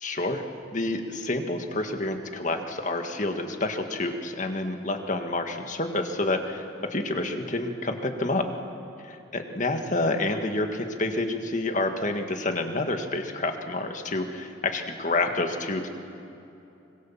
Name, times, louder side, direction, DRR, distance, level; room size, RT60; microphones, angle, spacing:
voice 1, 0.0-0.5 0.7-6.6 6.9-8.5 9.1-15.9, left 2 dB, 40° left, 5 dB, 1.8 m, -28 dB
25.0 x 21.0 x 7.4 m, 2.8 s
head